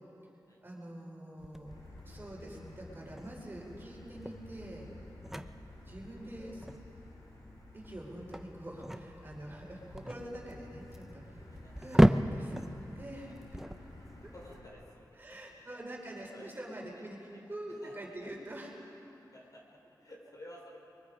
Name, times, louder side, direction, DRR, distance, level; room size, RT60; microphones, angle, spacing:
voice 1, 0.6-1.7 2.0-4.9 5.8-6.7 7.7-11.5 11.8-12.6 12.9-13.6 14.2-14.3 15.2-18.7, right 1 dB, 30° right, -2 dB, 4.7 m, -45 dB
sound 1, 1.4-14.5, equal, 5° right, 0.6 m, -34 dB
Motor vehicle (road), 1.6-14.7, left 2 dB, 90° left, 7.9 m, -52 dB
voice 2, 11.5-11.8 14.3-15.8 16.3-16.6 16.9-17.4 17.7-18.2 19.3-20.8, left 1 dB, 55° left, -2 dB, 5.1 m, -54 dB
30.0 x 23.5 x 5.0 m, 2.9 s
wide cardioid pair, 110°, 7 cm